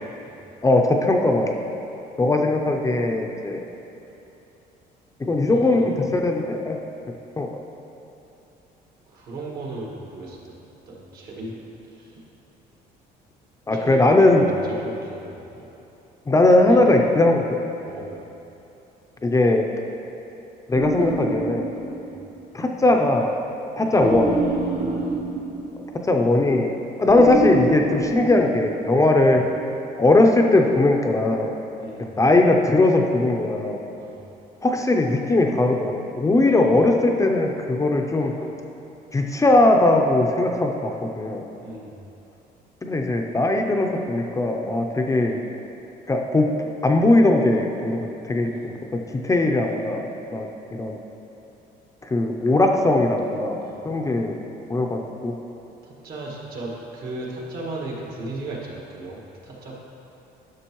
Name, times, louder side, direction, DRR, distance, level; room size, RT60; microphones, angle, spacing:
voice 1, 0.6-1.5 2.2-3.7 5.3-6.8 7.4-7.6 13.7-14.5 16.3-17.6 19.2-19.6 20.7-21.6 22.5-23.3 23.8-24.3 26.1-26.7 27.0-29.4 30.0-31.5 32.2-33.8 34.6-38.3 39.1-41.4 42.8-45.4 46.1-48.7 49.1-50.5 50.8-51.0 52.1-53.6 53.8-54.4 54.7-55.4, left 2 dB, 20° left, 2 dB, 0.5 m, -19 dB
voice 2, 5.4-5.9 9.1-10.5 10.9-11.6 11.9-12.2 13.7-14.0 14.3-15.7 16.7-16.8 17.9-18.2 22.0-22.2 23.9-25.2 29.1-29.2 31.8-32.2 34.0-34.2 36.4-36.8 41.6-42.0 48.4-49.1 53.6-53.9 55.8-59.8, right 2 dB, 65° right, -3 dB, 1.7 m, -37 dB
sound 1, 20.7-22.4 24.0-26.1 27.1-29.2, right 2 dB, 25° right, 0.9 m, -27 dB
11.5 x 6.1 x 3.0 m, 3.0 s
cardioid pair, 110°, 17 cm